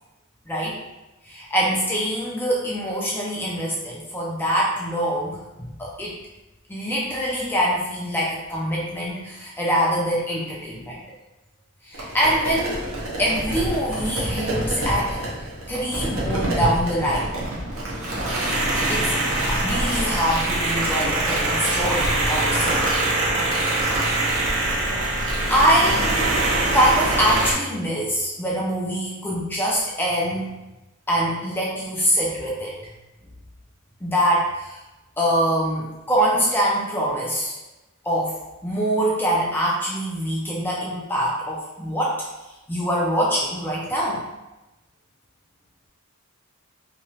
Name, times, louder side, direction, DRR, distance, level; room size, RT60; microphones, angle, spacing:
voice 1, 0.5-0.8 1.2-6.2 6.7-11.0 11.8-12.8 13.2-15.2 15.7-17.3 18.3-19.1 19.4-22.8 25.5-26.1 26.7-30.5 31.1-32.8 34.0-34.8 35.2-37.6 38.0-42.2 42.7-44.2, equal, 10° left, -5 dB, 0.4 m, -24 dB
sound 1, 11.9-27.5, right 2 dB, 65° right, 0.7 m, -24 dB
2.9 x 2.3 x 2.7 m, 1.0 s
head